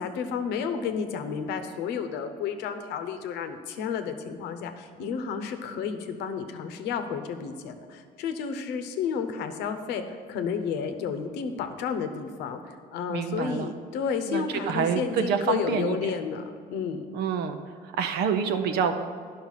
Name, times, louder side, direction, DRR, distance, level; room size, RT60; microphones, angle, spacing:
voice 1, 0.0-16.4 16.7-17.0, left 6 dB, 85° left, 8 dB, 0.9 m, -31 dB
voice 2, 13.1-13.7 14.3-16.0 17.1-17.6 17.8-19.1, right 7 dB, 75° right, 7 dB, 0.8 m, -27 dB
10.5 x 5.6 x 5.7 m, 2.1 s
cardioid pair, 110°, 17 cm